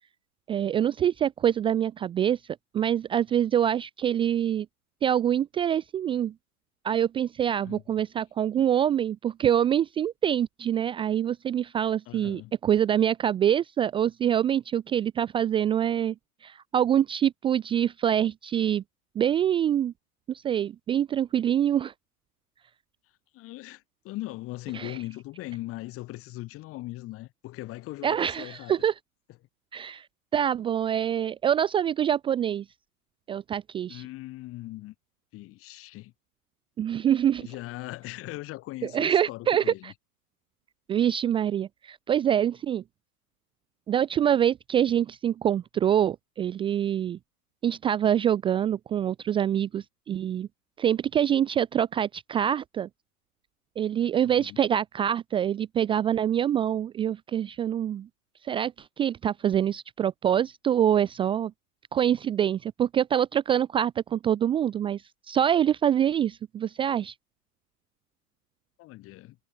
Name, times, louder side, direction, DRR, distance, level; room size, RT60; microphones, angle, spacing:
voice 1, 0.5-2.4 2.7-4.7 5.0-6.3 6.8-16.1 16.4-18.8 19.1-19.9 20.3-21.9 24.7-24.9 28.0-28.9 29.7-30.1 30.3-32.6 33.3-34.0 36.8-37.5 38.8-39.9 40.9-42.8 43.9-47.2 47.6-50.5 50.8-52.9 53.8-58.1 58.4-61.5 61.9-65.0 65.3-67.1, right 9 dB, 10° right, 0.7 m, -25 dB
voice 2, 7.6-8.0 8.5-8.7 12.1-12.5 23.3-28.8 33.9-34.9 35.3-36.1 37.4-39.9 54.2-54.6 68.8-69.4, left 18 dB, 30° left, 5.5 m, -39 dB
figure-of-eight pair, 110°, 46 cm